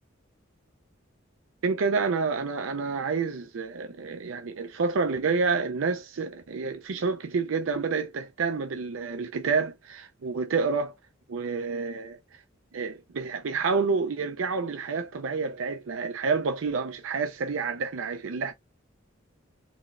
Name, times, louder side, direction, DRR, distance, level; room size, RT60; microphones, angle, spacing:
voice 1, 1.6-10.9 11.3-12.2 12.7-18.5, right 4 dB, 90° right, 0.5 m, -28 dB
4.2 x 3.2 x 2.5 m
head